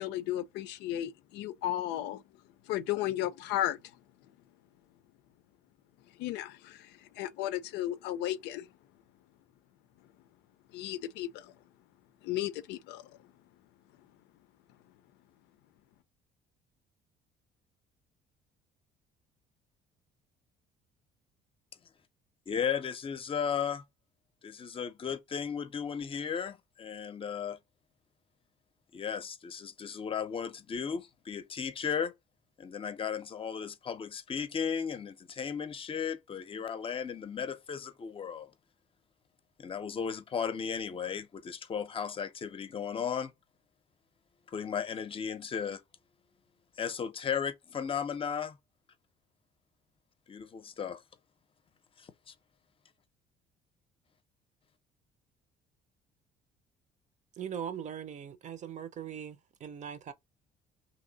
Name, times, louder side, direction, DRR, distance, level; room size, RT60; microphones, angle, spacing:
voice 1, 0.0-2.2 2.7-3.8 6.2-8.7 10.7-11.5 12.2-13.0, left 13 dB, 90° left, 0.5 m, -34 dB
voice 2, 22.5-23.8 24.4-27.6 28.9-32.1 32.6-38.5 39.6-43.3 44.5-45.8 46.8-48.6 50.3-51.0, left 7 dB, 35° left, 0.6 m, -35 dB
voice 3, 57.4-60.1, right 8 dB, 45° right, 0.6 m, -40 dB
2.9 x 2.7 x 3.9 m
cardioid pair, 110°, 17 cm